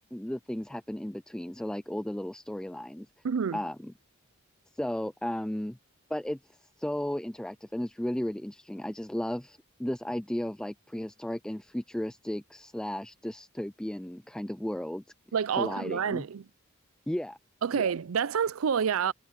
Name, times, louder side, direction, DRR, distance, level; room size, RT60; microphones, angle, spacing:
voice 1, 0.1-3.1 3.5-3.9 4.7-5.8 6.1-6.4 6.8-15.0 15.6-16.2 17.1-17.4 17.7-17.9, left 1 dB, 5° left, 0.3 m, -34 dB
voice 2, 3.2-3.6 15.3-16.4 17.6-19.1, right 7 dB, 75° right, 0.5 m, -28 dB
head